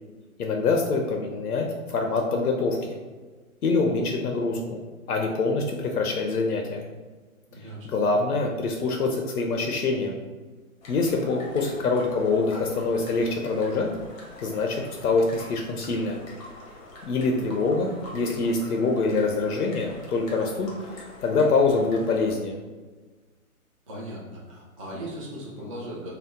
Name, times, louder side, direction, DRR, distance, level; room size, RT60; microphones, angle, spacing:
voice 1, 0.4-3.0 3.6-4.8 5.1-6.8 7.8-10.2 10.9-13.9 14.4-16.2 17.0-22.6, left 3 dB, 85° left, 1 dB, 0.6 m, -25 dB
voice 2, 7.5-7.9 23.9-26.1, right 1 dB, 25° right, -5 dB, 0.4 m, -38 dB
sound 1, 10.8-22.3, left 1 dB, 25° left, 0.6 m, -45 dB
2.8 x 2.0 x 3.6 m, 1.3 s
figure-of-eight pair, 130°, 44 cm